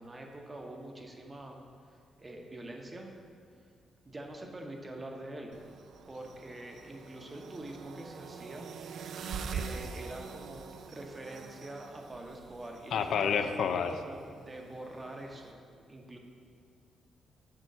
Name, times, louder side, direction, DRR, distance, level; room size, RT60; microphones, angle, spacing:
voice 1, 0.0-1.6 2.2-3.1 4.0-5.5 6.1-8.7 9.5-15.6 15.9-16.2, right 1 dB, 20° right, 2 dB, 0.8 m, -45 dB
sound 1, 5.5-15.5, right 6 dB, 60° right, 0.4 m, -45 dB
voice 2, 12.9-13.9, left 7 dB, 70° left, 8 dB, 0.4 m, -29 dB
6.4 x 4.5 x 6.6 m, 2.3 s
cardioid pair, 135°, 0 cm